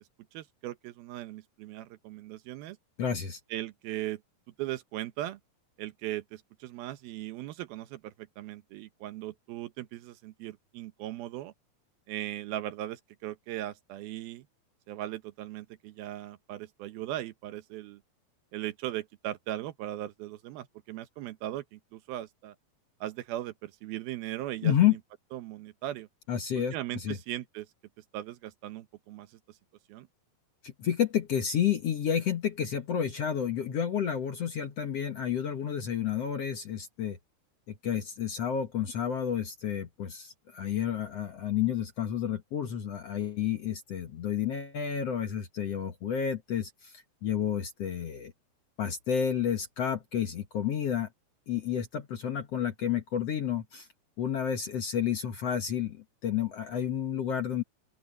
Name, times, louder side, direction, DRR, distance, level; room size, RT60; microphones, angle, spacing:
voice 1, 0.3-2.8 3.5-4.2 4.6-5.4 5.8-11.5 12.1-14.5 14.9-18.0 18.5-22.6 23.0-25.0 25.3-26.1 26.6-27.7 28.1-29.3 29.9-30.1, right 14 dB, 80° right, 2.9 m, -38 dB
voice 2, 3.0-3.4 24.6-25.0 26.3-27.2 30.6-37.2 37.7-48.3 48.8-51.1 51.5-53.9 54.2-57.6, left 9 dB, 55° left, 1.9 m, -30 dB
open air
omnidirectional pair, 4.3 m